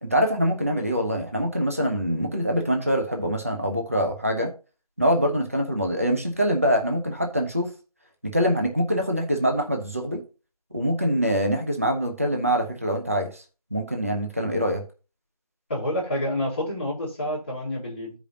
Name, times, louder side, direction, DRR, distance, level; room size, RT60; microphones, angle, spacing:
voice 1, 0.0-4.5 5.0-7.7 8.2-10.2 10.7-13.4 13.7-14.8, equal, 20° right, 3 dB, 0.6 m, -24 dB
voice 2, 15.7-18.2, left 1 dB, 15° left, -6 dB, 1.6 m, -28 dB
14.0 x 5.0 x 2.7 m, 0.33 s
figure-of-eight pair, 175°, 20 cm